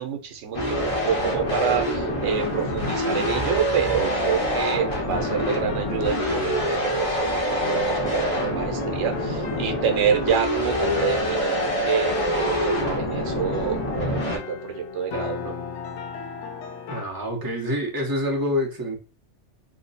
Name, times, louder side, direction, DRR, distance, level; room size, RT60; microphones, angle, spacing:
voice 1, 0.0-15.6, right 8 dB, 85° right, 5 dB, 1.0 m, -28 dB
sound 1, 0.5-14.4, equal, 30° left, 0.9 m, -26 dB
sound 2, 1.2-17.0, left 6 dB, 80° left, 0.9 m, -35 dB
voice 2, 16.9-19.0, left 1 dB, 20° right, -1 dB, 0.8 m, -26 dB
3.1 x 2.1 x 4.0 m, 0.32 s
omnidirectional pair, 1.2 m